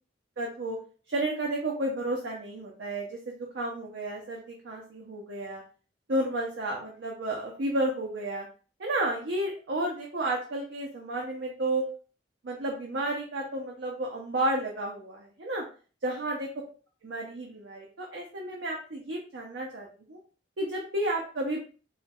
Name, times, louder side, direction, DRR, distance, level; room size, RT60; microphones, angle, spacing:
voice 1, 0.4-0.8 1.1-5.6 6.1-8.5 8.8-11.8 12.4-15.6 16.0-16.5 17.0-20.2 20.6-21.6, right 1 dB, 65° right, -1 dB, 0.6 m, -32 dB
4.3 x 2.2 x 2.3 m, 0.39 s
head